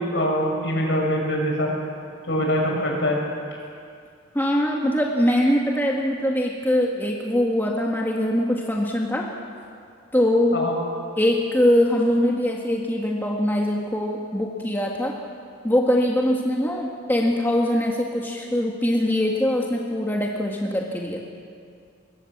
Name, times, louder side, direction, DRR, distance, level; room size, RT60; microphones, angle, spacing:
voice 1, 0.0-1.7 2.3-3.2 10.5-10.7, equal, 65° left, -1 dB, 7.2 m, -23 dB
voice 2, 4.3-9.3 10.1-10.6 11.2-15.2 15.6-21.2, left 1 dB, 10° left, -1 dB, 1.8 m, -22 dB
25.5 x 22.0 x 7.3 m, 2.3 s
head